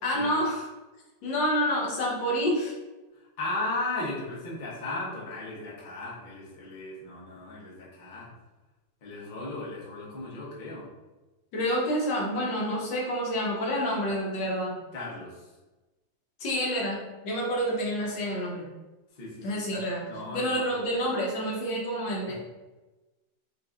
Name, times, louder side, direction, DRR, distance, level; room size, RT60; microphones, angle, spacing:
voice 1, 0.0-0.6 1.2-2.7 11.5-14.8 16.4-18.7 19.4-20.0 20.3-22.3, equal, 75° left, -4 dB, 1.7 m, -28 dB
voice 2, 3.1-8.3 9.0-10.9 14.9-15.5 19.1-19.5 19.7-20.9 22.3-22.4, left 2 dB, 40° left, -5 dB, 0.7 m, -36 dB
5.2 x 2.6 x 2.5 m, 1.1 s
omnidirectional pair, 2.0 m